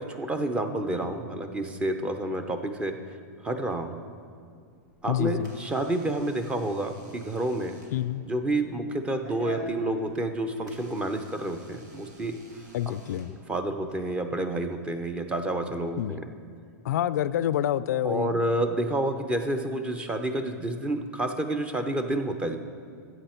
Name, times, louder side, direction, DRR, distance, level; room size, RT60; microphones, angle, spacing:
voice 1, 0.0-3.0 3.4-4.0 5.0-7.8 8.3-12.4 12.9-13.0 13.5-16.3 18.0-22.6, right 1 dB, 10° right, 7 dB, 0.6 m, -29 dB
Door / Alarm, 4.7-13.9, left 1 dB, 90° right, 2.3 m, -48 dB
voice 2, 5.1-5.5 7.9-8.2 12.7-13.3 16.0-16.2 16.8-18.5, left 11 dB, 75° left, 16 dB, 0.3 m, -28 dB
13.5 x 8.3 x 4.4 m, 2.2 s
supercardioid pair, 145°, 9 cm